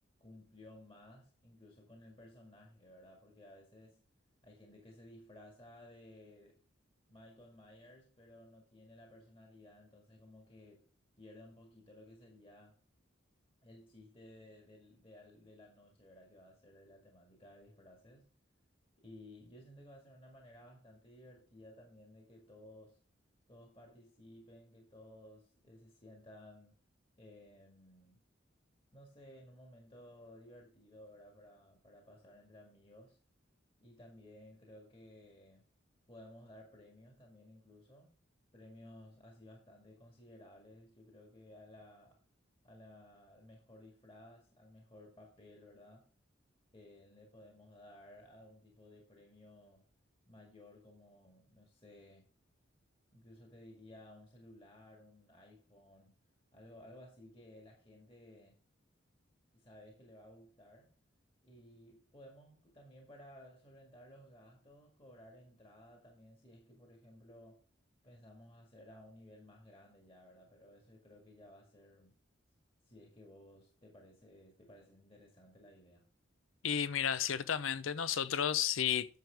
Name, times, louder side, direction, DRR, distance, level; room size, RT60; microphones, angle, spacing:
voice 1, 0.2-4.0 4.4-6.6 7.1-10.9 11.2-12.8 13.6-18.3 19.0-23.0 23.5-26.8 27.2-28.2 28.9-33.2 33.8-35.6 36.1-38.1 38.5-42.2 42.6-46.1 46.7-49.9 50.3-52.3 53.1-56.1 56.5-58.6 59.5-60.9 61.4-67.6 68.0-72.1 72.8-76.1, left 1 dB, 25° left, 1.8 m, -57 dB
voice 2, 76.6-79.1, left 8 dB, 80° left, 0.6 m, -32 dB
9.3 x 7.1 x 3.4 m
head